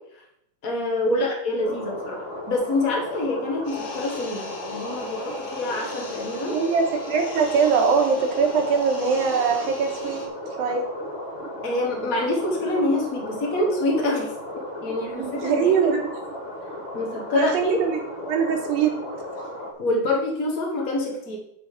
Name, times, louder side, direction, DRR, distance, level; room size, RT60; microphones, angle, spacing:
voice 1, 0.6-6.6 11.6-14.3 14.8-15.9 16.9-17.7 19.8-21.4, left 2 dB, 85° left, -1 dB, 0.7 m, -26 dB
sound 1, 1.6-19.7, left 1 dB, 40° left, 2.3 m, -35 dB
sound 2, 3.6-10.3, left 4 dB, 60° left, 2.7 m, -39 dB
voice 2, 6.5-10.2 10.6-10.8 15.1-16.0 17.3-18.0 18.3-18.9, right 6 dB, 80° right, 1 dB, 3.0 m, -22 dB
10.0 x 3.9 x 6.5 m, 0.78 s
omnidirectional pair, 4.2 m